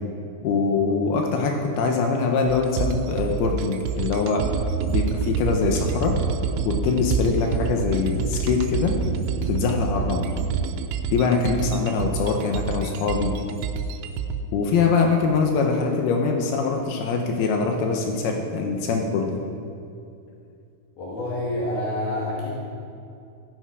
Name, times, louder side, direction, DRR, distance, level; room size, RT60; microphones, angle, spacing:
voice 1, 0.4-4.5 4.9-6.1 6.6-8.9 9.5-10.3 11.1-13.3 14.5-19.4, left 4 dB, 90° left, 2 dB, 2.2 m, -23 dB
sound 1, 2.5-14.4, right 5 dB, 90° right, 3.3 m, -27 dB
voice 2, 21.0-22.7, left 1 dB, 55° left, -6 dB, 3.5 m, -28 dB
15.5 x 10.0 x 4.8 m, 2.5 s
omnidirectional pair, 5.9 m